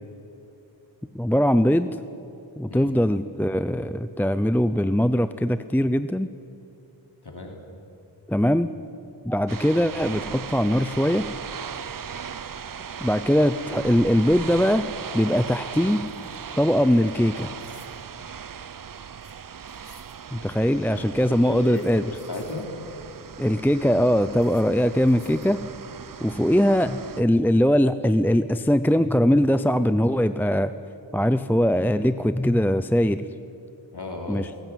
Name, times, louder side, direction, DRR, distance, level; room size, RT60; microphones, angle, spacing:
voice 1, 1.1-1.9 2.6-6.3 8.3-8.7 9.2-11.3 13.0-14.9 15.1-16.0 16.6-17.5 20.3-22.1 23.4-25.6 26.2-30.7 31.1-33.2 34.3-34.5, equal, 5° left, 12 dB, 0.6 m, -21 dB
voice 2, 7.2-7.6 21.3-21.8 22.1-22.7 33.9-34.5, left 2 dB, 60° left, 2 dB, 3.2 m, -35 dB
sound 1, 9.5-27.2, right 7 dB, 50° right, 0.6 m, -38 dB
sound 2, 15.2-16.8 17.6-18.0 19.2-20.2 21.6-22.7 24.3-24.7 25.1-25.6, left 4 dB, 80° left, 2.5 m, -55 dB
21.0 x 18.5 x 9.2 m, 2.8 s
wide cardioid pair, 70°, 45 cm